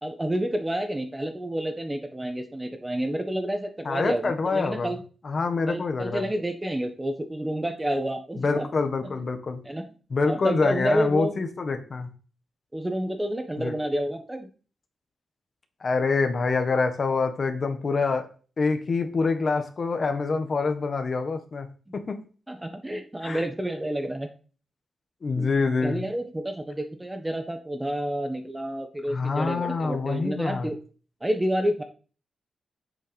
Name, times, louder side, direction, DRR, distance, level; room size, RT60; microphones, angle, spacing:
voice 1, 0.0-5.0 5.7-8.7 9.6-9.8 10.3-11.4 12.7-14.5 22.5-24.3 25.4-25.5 25.8-30.8 31.2-31.8, right 1 dB, 10° right, 6 dB, 1.3 m, -29 dB
voice 2, 3.8-4.9 5.2-6.3 8.4-9.6 10.1-12.1 13.6-13.7 15.8-18.3 18.6-21.7 21.9-22.2 23.2-23.4 25.2-26.0 29.1-30.7, left 4 dB, 40° left, 7 dB, 1.5 m, -26 dB
8.0 x 6.6 x 7.0 m, 0.39 s
wide cardioid pair, 135°, 0 cm